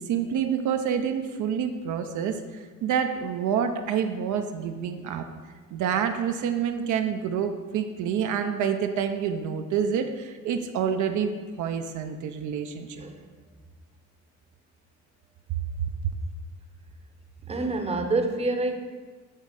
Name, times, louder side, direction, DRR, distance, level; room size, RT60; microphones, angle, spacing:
voice 1, 0.0-5.2 5.7-11.3 11.6-13.0, right 7 dB, 75° right, 6 dB, 0.5 m, -28 dB
voice 2, 17.5-18.8, right 2 dB, 20° right, 5 dB, 0.7 m, -27 dB
7.4 x 3.1 x 5.1 m, 1.4 s
cardioid pair, 90°, 30 cm